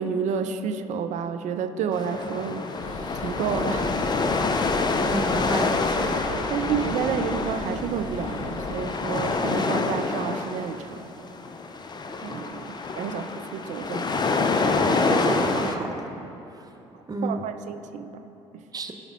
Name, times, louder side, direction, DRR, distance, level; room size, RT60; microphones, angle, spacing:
voice 1, 0.0-4.0 6.3-11.1 12.2-14.7 17.2-18.2 18.5-18.6, right 7 dB, 50° right, 8 dB, 0.5 m, -30 dB
sound 1, 1.9-15.8, left 3 dB, 30° left, 0.6 m, -27 dB
sound 2, 2.8-8.9, left 2 dB, 50° left, 1.3 m, -39 dB
voice 2, 5.0-6.2 13.1-13.2 14.7-15.9 17.1-17.5 18.7-18.9, right 2 dB, 25° right, 4 dB, 0.8 m, -31 dB
14.0 x 5.1 x 3.1 m, 3.0 s
figure-of-eight pair, 50°, 15 cm